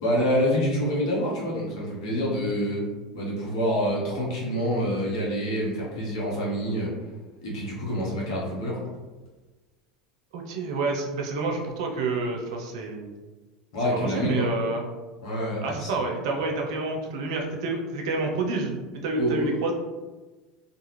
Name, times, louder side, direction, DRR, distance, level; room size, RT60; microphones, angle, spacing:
voice 1, 0.0-2.9 3.1-6.9 7.4-8.8 13.7-14.5 15.2-16.1 19.2-19.6, equal, 75° left, -4 dB, 1.0 m, -27 dB
voice 2, 10.3-13.1 13.9-14.8 15.6-19.7, right 3 dB, 70° right, 2 dB, 0.5 m, -28 dB
2.4 x 2.4 x 3.0 m, 1.2 s
hypercardioid pair, 85°, 3 cm